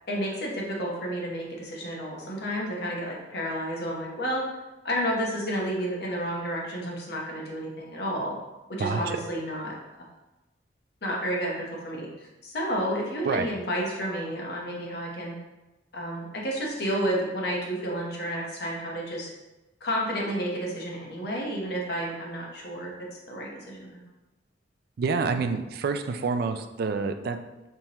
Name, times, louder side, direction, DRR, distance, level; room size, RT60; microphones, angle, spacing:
voice 1, 0.1-4.5 4.8-8.3 8.7-9.8 11.0-15.3 15.9-19.3 19.8-22.9 23.3-24.0, equal, 60° left, -2 dB, 1.0 m, -31 dB
voice 2, 8.8-9.2 13.2-13.5 25.0-27.4, right 4 dB, 55° right, 7 dB, 0.3 m, -27 dB
4.2 x 3.5 x 2.9 m, 1.0 s
head